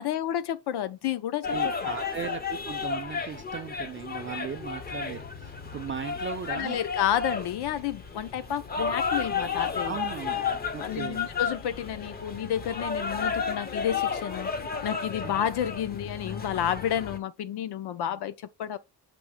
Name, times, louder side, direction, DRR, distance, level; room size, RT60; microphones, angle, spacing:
voice 1, 0.0-1.9 6.5-10.0 10.8-14.5 14.8-18.8, left 10 dB, 65° left, 0.7 m, -30 dB
sound 1, 1.4-17.2, left 6 dB, 25° left, 0.5 m, -32 dB
voice 2, 1.5-6.8 9.8-10.4 10.7-11.3 15.2-15.7, right 7 dB, 30° right, 0.4 m, -37 dB
6.9 x 2.9 x 4.9 m
cardioid pair, 175°, 42 cm